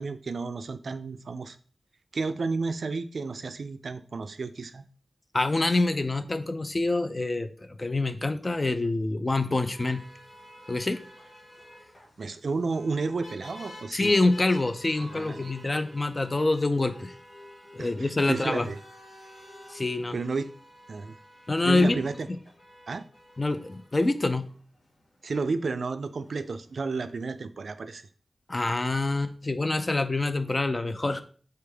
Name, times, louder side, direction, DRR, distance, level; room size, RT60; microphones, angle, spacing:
voice 1, 0.0-1.6 2.1-4.8 12.2-14.1 15.1-15.5 17.8-18.8 20.1-20.5 20.9-21.2 21.6-22.3 22.9-23.0 25.2-28.1, right 4 dB, 70° right, 11 dB, 0.3 m, -32 dB
voice 2, 5.3-10.0 10.7-11.0 13.9-17.1 17.7-18.7 19.7-20.2 21.5-22.0 23.4-24.5 28.5-31.2, left 2 dB, 30° left, 10 dB, 0.4 m, -26 dB
sound 1, 9.5-27.4, left 1 dB, 60° left, 2.0 m, -50 dB
4.4 x 3.3 x 3.4 m, 0.43 s
wide cardioid pair, 105°, 0 cm